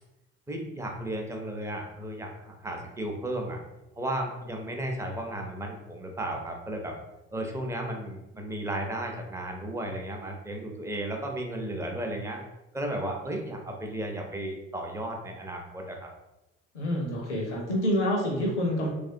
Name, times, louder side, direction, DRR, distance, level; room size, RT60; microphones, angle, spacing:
voice 1, 0.5-3.6 4.0-7.0 7.3-12.4 12.7-16.1, right 1 dB, 10° right, 1 dB, 0.6 m, -34 dB
voice 2, 16.7-18.9, equal, 85° left, -1 dB, 0.7 m, -27 dB
3.1 x 2.4 x 2.7 m, 0.94 s
figure-of-eight pair, 55°, 34 cm